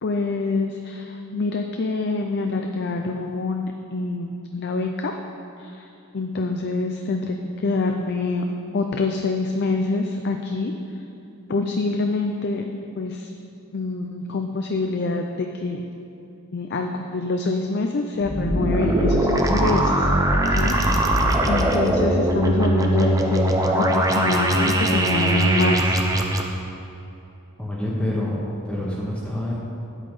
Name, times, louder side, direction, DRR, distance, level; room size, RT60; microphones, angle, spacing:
voice 1, 0.0-5.1 5.6-5.9 6.1-8.4 8.7-11.0 11.5-12.6 13.0-13.3 13.7-15.9 16.5-20.1 20.6-26.0, left 3 dB, 50° left, 4 dB, 0.5 m, -26 dB
sound 1, 18.2-26.4, right 1 dB, 15° right, 0.7 m, -20 dB
voice 2, 27.6-28.4 28.6-29.6, left 1 dB, 5° left, -6 dB, 1.3 m, -27 dB
8.9 x 8.2 x 5.5 m, 2.9 s
head